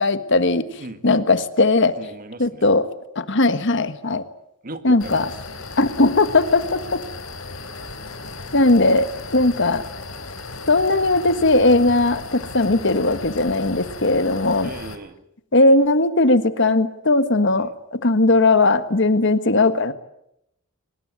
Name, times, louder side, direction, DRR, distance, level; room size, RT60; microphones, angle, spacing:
voice 1, 0.0-0.7 1.0-2.0 2.4-2.9 3.1-4.2 4.8-5.3 5.8-7.0 8.5-9.8 10.7-14.7 15.5-19.9, left 2 dB, 60° left, 12 dB, 1.5 m, -18 dB
voice 2, 0.8-1.2 2.0-2.6 4.6-5.3 12.6-12.7 14.6-15.2 17.6-17.7, right 2 dB, 45° right, 10 dB, 1.9 m, -37 dB
sound 1, 5.0-14.9, left 3 dB, 85° left, 3.4 m, -36 dB
24.0 x 20.0 x 9.5 m, 0.80 s
head